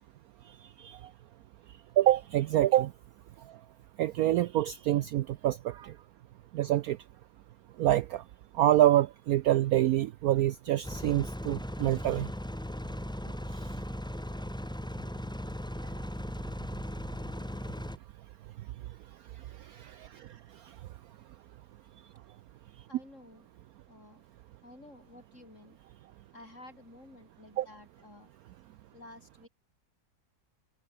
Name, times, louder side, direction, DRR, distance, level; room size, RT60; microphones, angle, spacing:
voice 1, 2.0-2.9 4.0-5.9 6.5-7.0 7.8-8.2 8.6-12.3 19.7-20.3 27.6-27.7, right 13 dB, 80° right, 0.8 m, -26 dB
sound 1, 10.8-18.0, equal, 5° left, 0.8 m, -38 dB
voice 2, 22.9-23.5 23.9-24.2 24.6-25.8 26.3-28.3 28.9-29.5, left 2 dB, 40° left, 6.5 m, -52 dB
omnidirectional pair, 2.1 m